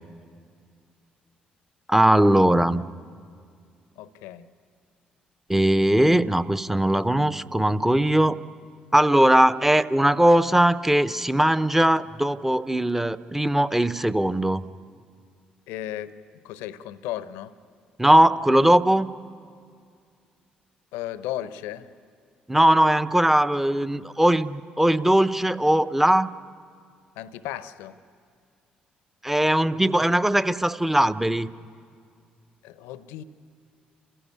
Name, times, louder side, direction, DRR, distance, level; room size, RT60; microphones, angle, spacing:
voice 1, 1.9-2.8 5.5-8.4 8.9-14.7 18.0-19.1 22.5-26.3 29.2-31.5, right 1 dB, 5° right, 0.8 m, -20 dB
voice 2, 4.0-4.5 15.7-16.1 16.4-17.5 20.9-21.9 27.2-27.9 32.6-33.2, left 13 dB, 75° left, 0.8 m, -35 dB
29.5 x 16.0 x 9.8 m
hypercardioid pair, 50°, 4 cm